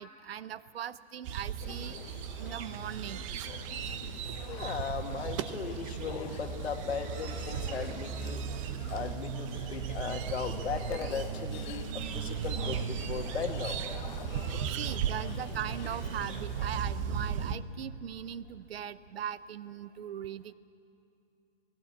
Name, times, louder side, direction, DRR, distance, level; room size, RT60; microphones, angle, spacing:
voice 1, 0.0-3.2 14.7-20.5, right 9 dB, 65° right, 17 dB, 0.8 m, -40 dB
sound 1, 1.2-17.6, right 8 dB, 30° right, 0.8 m, -36 dB
sound 2, 1.6-16.8, left 10 dB, 45° left, 1.0 m, -48 dB
voice 2, 4.5-8.4 8.9-13.8, left 6 dB, 75° left, 5 dB, 1.9 m, -37 dB
19.0 x 16.5 x 8.4 m, 2.7 s
hypercardioid pair, 140°, 32 cm